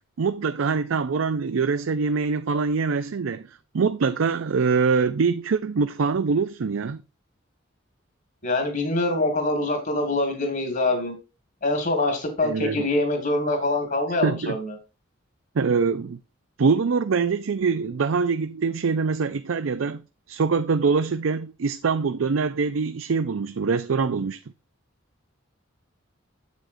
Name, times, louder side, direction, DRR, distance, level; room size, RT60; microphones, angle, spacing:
voice 1, 0.2-3.5 3.7-7.0 12.4-12.9 14.2-14.6 15.6-16.2 16.6-20.0 20.3-24.4, right 5 dB, 80° right, 0.5 m, -24 dB
voice 2, 8.4-11.1 11.6-14.7, left 2 dB, 50° left, 2.0 m, -24 dB
8.2 x 7.6 x 2.6 m
head